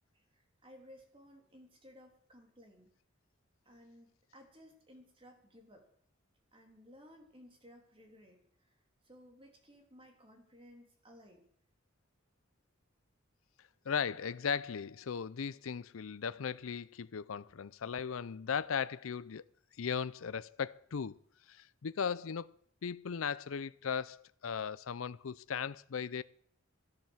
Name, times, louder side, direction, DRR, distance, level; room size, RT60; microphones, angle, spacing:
voice 1, 0.1-2.9 3.6-5.9 6.5-8.4 8.7-8.8 9.0-11.5, equal, 25° right, 3.3 m, -58 dB
voice 2, 13.9-19.4 19.8-21.2 21.5-22.5 22.8-26.2, left 6 dB, 85° left, 0.5 m, -37 dB
14.0 x 10.5 x 7.2 m
head